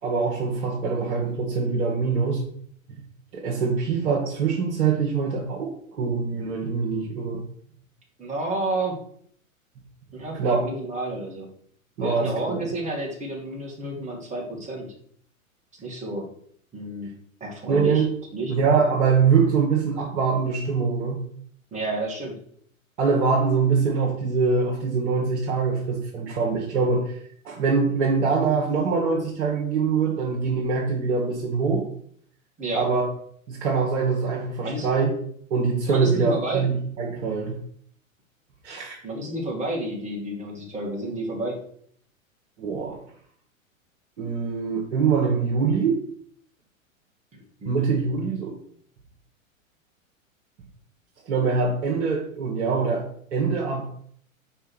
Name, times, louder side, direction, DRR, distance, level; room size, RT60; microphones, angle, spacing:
voice 1, 0.0-2.4 3.3-7.4 10.3-10.6 12.0-12.6 17.7-18.1 18.5-21.2 23.0-27.2 27.4-31.9 32.7-33.1 33.5-35.1 35.5-37.6 38.6-39.0 42.6-43.0 44.2-46.0 47.7-48.6 51.3-53.8, right 5 dB, 55° right, -2 dB, 1.9 m, -23 dB
voice 2, 8.2-9.0 10.1-11.5 12.0-14.9 15.8-16.3 16.7-18.0 18.3-18.6 21.7-22.4 32.6-32.9 34.6-34.9 35.9-36.7 39.0-41.6 47.3-47.8, right 2 dB, 15° right, -1 dB, 2.3 m, -30 dB
5.6 x 5.0 x 6.2 m, 0.63 s
figure-of-eight pair, 105°, 41 cm